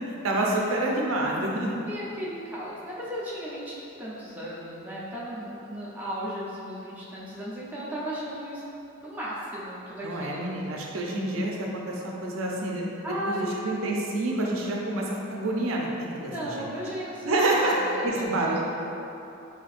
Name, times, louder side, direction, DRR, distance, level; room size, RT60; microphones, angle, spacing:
voice 1, 0.2-1.7 10.0-12.8 13.2-16.3 16.6-16.7 17.2-17.7 18.0-18.6, right 2 dB, 90° right, -2 dB, 0.5 m, -27 dB
voice 2, 1.9-8.6 9.0-10.8 13.0-13.8 16.3-18.6, equal, 10° right, -8 dB, 0.6 m, -35 dB
5.0 x 2.7 x 2.5 m, 2.9 s
head